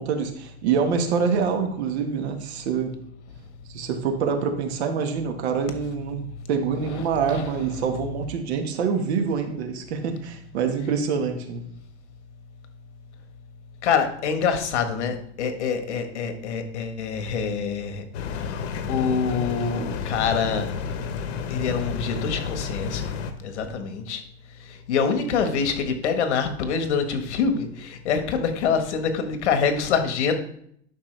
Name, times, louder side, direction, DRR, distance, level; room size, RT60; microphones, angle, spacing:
voice 1, 0.0-3.0 3.7-6.2 6.5-11.7, right 6 dB, 70° right, 5 dB, 1.7 m, -26 dB
voice 2, 13.8-18.0 18.4-20.7 21.5-23.1 23.4-24.2 24.7-30.3, left 6 dB, 85° left, 7 dB, 1.5 m, -25 dB
sound 1, 18.1-23.3, left 6 dB, 70° left, 1.2 m, -31 dB
11.5 x 5.9 x 3.3 m, 0.68 s
supercardioid pair, 165°, 34 cm